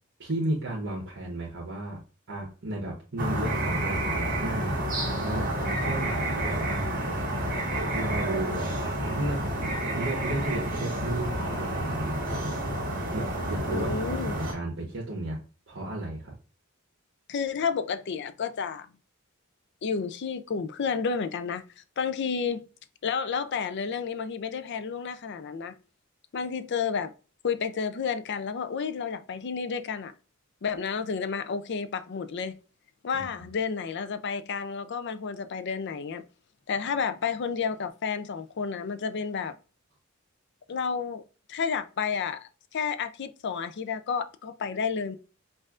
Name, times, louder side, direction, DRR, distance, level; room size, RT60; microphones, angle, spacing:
voice 1, 0.2-2.0 2.3-4.8 5.2-6.9 7.9-8.7 9.0-12.6 13.1-15.4 15.7-16.3 33.1-33.5, right 1 dB, 60° right, 1.2 m, -34 dB
sound 1, 3.2-14.5, right 1 dB, 45° right, 1.6 m, -29 dB
voice 2, 13.7-14.4 17.3-18.9 19.8-22.7 23.0-25.7 26.3-27.1 27.4-30.1 30.6-32.6 33.0-36.2 36.7-39.6 40.7-41.2 41.5-45.2, left 6 dB, 55° left, 0.4 m, -31 dB
5.3 x 2.6 x 2.4 m
head